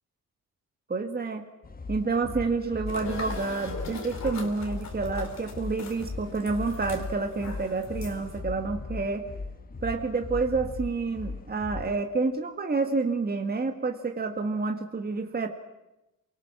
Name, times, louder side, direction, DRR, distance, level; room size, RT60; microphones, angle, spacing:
voice 1, 0.9-1.4 1.9-9.2 9.8-15.5, right 4 dB, 30° right, 4 dB, 1.9 m, -29 dB
sound 1, 1.6-12.0, left 3 dB, 25° left, 1.5 m, -38 dB
sound 2, 2.9-8.4, left 4 dB, 55° left, 3.9 m, -41 dB
27.5 x 19.5 x 6.0 m, 0.95 s
cardioid pair, 75°, 33 cm